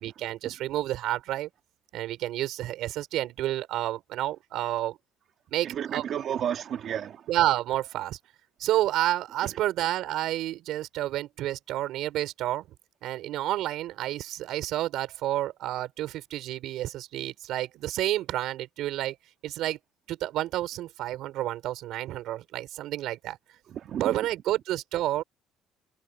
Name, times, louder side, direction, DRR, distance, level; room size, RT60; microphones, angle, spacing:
voice 1, 0.0-1.5 1.9-5.0 5.5-6.1 7.3-8.2 8.6-12.7 13.0-19.2 19.4-19.8 20.1-23.4 24.0-25.2, right 14 dB, 60° right, 5.5 m, -30 dB
voice 2, 5.6-7.2 23.7-24.1, right 9 dB, 40° right, 1.9 m, -32 dB
cardioid pair, 180°, 0 cm